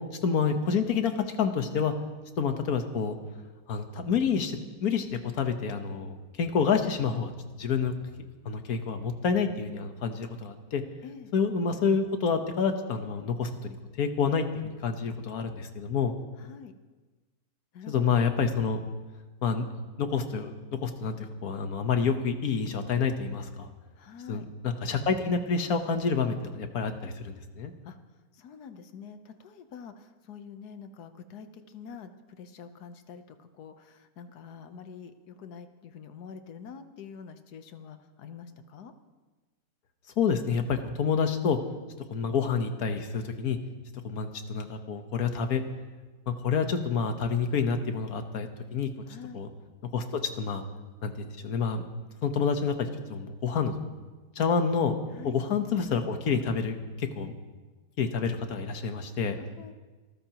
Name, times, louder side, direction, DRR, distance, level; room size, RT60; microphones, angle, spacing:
voice 1, 0.2-1.9 2.4-3.2 3.7-7.3 7.6-7.9 8.4-10.8 11.3-16.2 17.9-18.8 19.4-19.6 20.0-20.5 20.8-21.2 21.4-23.7 24.3-27.7 40.2-41.6 42.1-43.6 44.0-45.6 46.3-48.9 49.3-49.5 49.9-50.6 51.0-51.8 52.2-53.8 54.3-55.0 55.2-57.3 58.0-59.4, left 6 dB, 70° left, 7 dB, 1.6 m, -28 dB
voice 2, 16.4-16.7 17.7-18.2 24.0-24.5 27.8-28.0 28.3-38.9 49.1-49.4 55.1-55.3 59.4-59.7, left 6 dB, 90° left, 9 dB, 1.5 m, -46 dB
26.5 x 14.0 x 3.0 m, 1.3 s
omnidirectional pair, 1.6 m